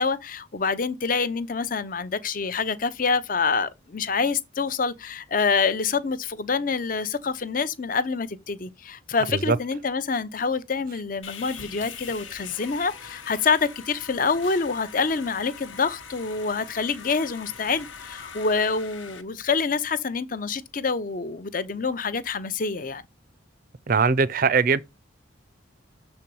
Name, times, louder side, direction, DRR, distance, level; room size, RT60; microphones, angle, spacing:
voice 1, 0.0-23.0, left 4 dB, 45° left, 0.6 m, -26 dB
Sawing, 11.2-19.2, left 6 dB, 85° left, 1.1 m, -42 dB
voice 2, 23.9-24.8, right 5 dB, 45° right, 0.5 m, -21 dB
6.7 x 4.4 x 5.3 m
head